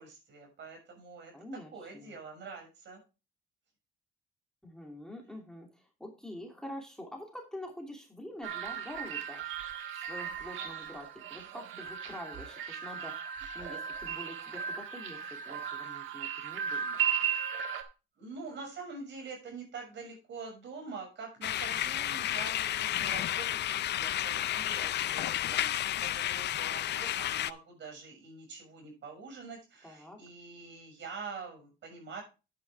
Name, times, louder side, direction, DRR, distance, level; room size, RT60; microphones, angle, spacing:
voice 1, 0.0-1.3 1.7-3.0 10.7-10.9 17.3-17.6 18.2-32.2, right 4 dB, 65° right, 2 dB, 6.3 m, -45 dB
voice 2, 1.3-2.2 4.6-9.4 9.9-17.0 29.8-30.2, left 1 dB, 5° left, 0 dB, 2.8 m, -46 dB
sound 1, 8.4-17.8, right 7 dB, 80° right, 1.4 m, -36 dB
sound 2, 21.4-27.5, left 12 dB, 60° left, 0.5 m, -32 dB
9.4 x 9.2 x 3.4 m, 0.29 s
cardioid pair, 90°, 20 cm